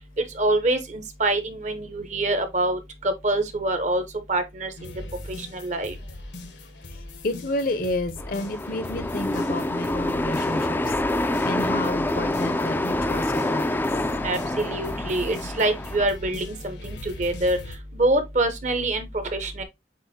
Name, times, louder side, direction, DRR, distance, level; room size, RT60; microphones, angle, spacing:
voice 1, 0.3-4.0 4.3-4.9 5.3-6.0 14.2-17.6 17.9-19.6, right 2 dB, 40° right, 0.8 m, -25 dB
sound 1, 4.8-17.8, left 2 dB, 75° left, 1.0 m, -40 dB
voice 2, 6.9-13.9, left 1 dB, 50° left, 0.7 m, -31 dB
sound 2, 8.2-16.1, left 1 dB, 10° left, 0.3 m, -27 dB
7.5 x 2.6 x 2.7 m
head